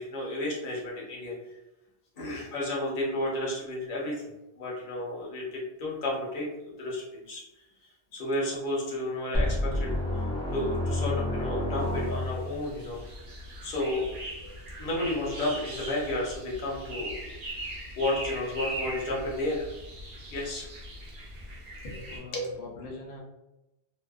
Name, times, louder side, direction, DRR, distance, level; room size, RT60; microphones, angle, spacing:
voice 1, 0.0-1.3 2.2-4.2 4.6-7.4 8.1-10.0 10.5-13.0 13.6-14.5 14.8-17.2 18.0-19.7 20.3-20.7 21.8-22.5, left 1 dB, 50° left, -4 dB, 0.8 m, -32 dB
sound 1, 9.3-12.6, left 1 dB, 5° left, 0.5 m, -29 dB
sound 2, 11.8-22.2, right 1 dB, 55° right, 0.8 m, -40 dB
voice 2, 21.6-23.2, left 2 dB, 85° left, -1 dB, 0.9 m, -44 dB
2.6 x 2.1 x 2.3 m, 0.96 s
omnidirectional pair, 1.1 m